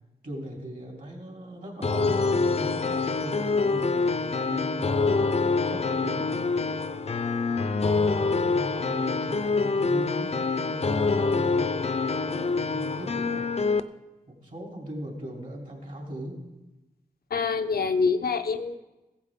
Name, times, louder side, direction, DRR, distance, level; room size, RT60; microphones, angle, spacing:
voice 1, 0.2-7.0 7.5-13.5 14.3-16.4, right 1 dB, 60° right, -1 dB, 3.0 m, -39 dB
sound 1, 1.8-13.8, left 4 dB, 45° left, 0.5 m, -26 dB
voice 2, 17.3-18.8, left 5 dB, 90° left, 8 dB, 0.6 m, -25 dB
15.0 x 8.5 x 3.6 m, 1.0 s
wide cardioid pair, 70°, 15 cm